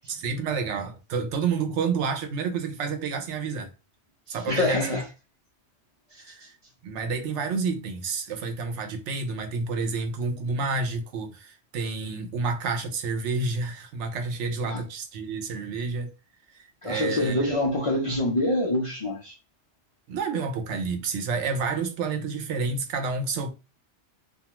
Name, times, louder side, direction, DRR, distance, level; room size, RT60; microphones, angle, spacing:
voice 1, 0.1-3.7 4.3-5.0 6.2-6.5 6.8-16.1 16.5-17.5 20.1-23.5, right 4 dB, 85° right, 0.9 m, -29 dB
voice 2, 4.5-5.0 14.7-14.8 16.8-19.3, left 1 dB, 50° left, 0.4 m, -25 dB
2.3 x 2.2 x 2.9 m
omnidirectional pair, 1.2 m